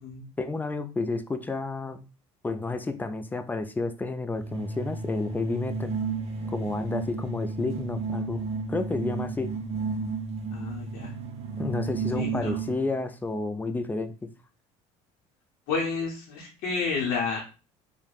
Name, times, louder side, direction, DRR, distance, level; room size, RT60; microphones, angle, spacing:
voice 1, 0.4-2.0 2.4-5.9 6.5-8.4 8.7-9.5 11.6-14.1, left 3 dB, 10° left, 9 dB, 0.3 m, -30 dB
sound 1, 4.4-13.0, right 4 dB, 45° right, 0.6 m, -33 dB
voice 2, 10.5-11.1 12.1-12.6 15.7-17.4, left 4 dB, 70° left, -2 dB, 0.7 m, -30 dB
3.2 x 2.1 x 2.4 m, 0.33 s
supercardioid pair, 90°, 15 cm